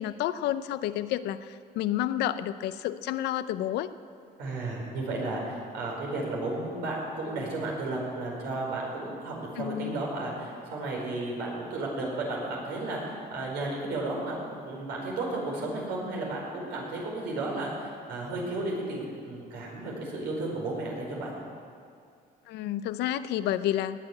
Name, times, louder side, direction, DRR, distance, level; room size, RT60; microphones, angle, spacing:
voice 1, 0.0-3.9 9.6-10.0 22.5-24.0, left 12 dB, 80° left, 13 dB, 0.7 m, -30 dB
voice 2, 4.4-14.3 14.6-21.3, right 2 dB, 85° right, -2 dB, 5.1 m, -33 dB
19.0 x 7.0 x 9.7 m, 2.3 s
cardioid pair, 110°, 17 cm